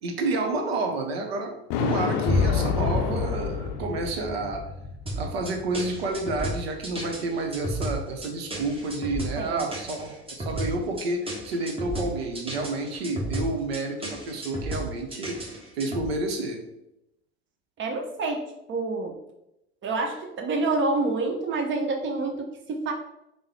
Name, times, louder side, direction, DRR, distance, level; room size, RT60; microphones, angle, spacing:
voice 1, 0.0-1.5 1.8-4.7 5.2-15.5 15.8-16.6, right 2 dB, 85° right, 3 dB, 0.6 m, -30 dB
Thunder, 1.7-4.2, left 7 dB, 65° left, 0.4 m, -29 dB
sound 1, 2.2-9.6, left 4 dB, 30° left, 0.8 m, -31 dB
sound 2, 5.1-16.1, right 1 dB, 20° right, 1.1 m, -33 dB
voice 2, 9.4-9.7 17.8-19.2 19.8-22.9, right 3 dB, 40° right, 2 dB, 0.8 m, -28 dB
3.5 x 2.0 x 3.2 m, 0.86 s
hypercardioid pair, 65°, 30 cm